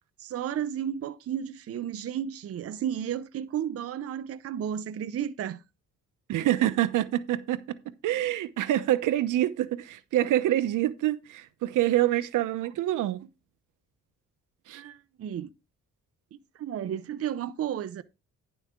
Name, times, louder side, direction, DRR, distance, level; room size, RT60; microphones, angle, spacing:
voice 1, 0.2-5.6 14.7-15.5 16.5-18.0, right 9 dB, 50° right, 0.6 m, -33 dB
voice 2, 6.3-7.8 8.0-13.2 14.7-14.8, right 13 dB, 85° right, 0.9 m, -26 dB
10.5 x 7.1 x 3.6 m
cardioid pair, 110°, 30 cm